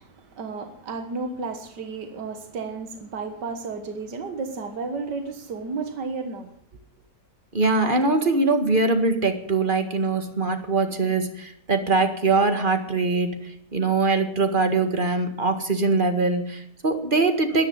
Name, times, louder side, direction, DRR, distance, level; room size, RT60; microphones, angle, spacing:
voice 1, 0.0-6.5, right 4 dB, 85° right, 2.1 m, -33 dB
voice 2, 7.5-17.7, right 3 dB, 30° right, 1.9 m, -22 dB
13.0 x 11.5 x 9.6 m
omnidirectional pair, 1.8 m